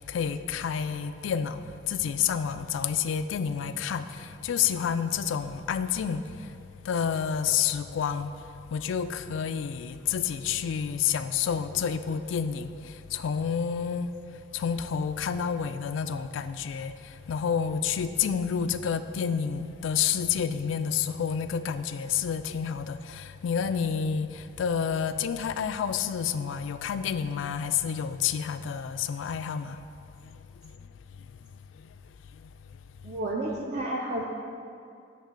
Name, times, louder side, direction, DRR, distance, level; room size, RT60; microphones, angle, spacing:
voice 1, 0.0-6.6 6.8-8.4 8.7-29.8 30.2-30.7 32.3-32.4, left 7 dB, 80° left, 0.3 m, -29 dB
voice 2, 33.0-34.2, right 1 dB, 40° right, 0.5 m, -31 dB
8.9 x 3.0 x 6.2 m
head